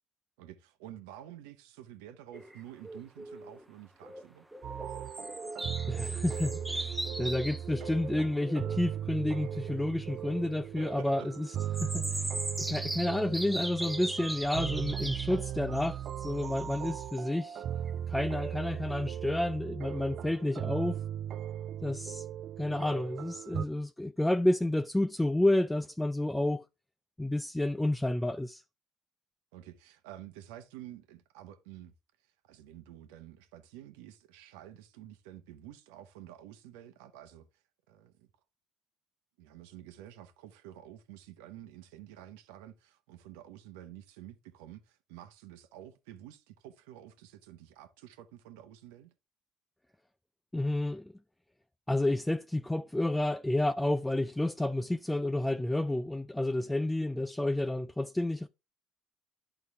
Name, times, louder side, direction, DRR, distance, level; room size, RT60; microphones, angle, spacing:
voice 1, 0.4-4.4 10.8-11.3 29.5-31.9 32.4-37.5 37.9-38.3 39.4-49.1, right 12 dB, 85° right, 0.9 m, -50 dB
sound 1, 2.3-3.6 4.0-4.2 4.5-8.8 9.1-10.5 11.6-15.4 15.7-17.2 17.9-18.0 18.4-18.6 19.0-19.1, right 1 dB, 5° right, 0.9 m, -39 dB
sound 2, 4.6-23.7, right 10 dB, 60° right, 0.5 m, -38 dB
voice 2, 5.9-12.2 12.6-17.6 18.1-21.0 21.8-22.3 22.6-26.6 27.2-28.6 50.5-51.1 51.9-58.5, left 1 dB, 10° left, 0.4 m, -30 dB
11.0 x 4.0 x 3.5 m
hypercardioid pair, 65°, 0 cm